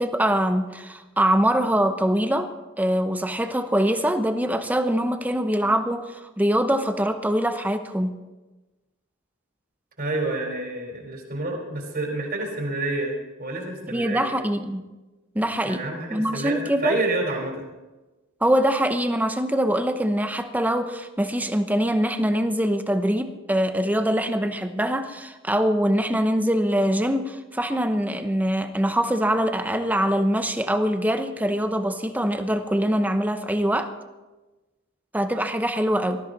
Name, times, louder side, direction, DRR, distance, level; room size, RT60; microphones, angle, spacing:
voice 1, 0.0-2.5 2.8-8.1 13.9-14.8 15.3-15.8 16.1-16.9 18.4-33.9 35.1-36.2, equal, 10° right, 8 dB, 0.8 m, -23 dB
voice 2, 10.0-14.3 15.6-17.5, right 2 dB, 45° right, 1 dB, 4.1 m, -28 dB
19.0 x 14.0 x 4.0 m, 1.1 s
head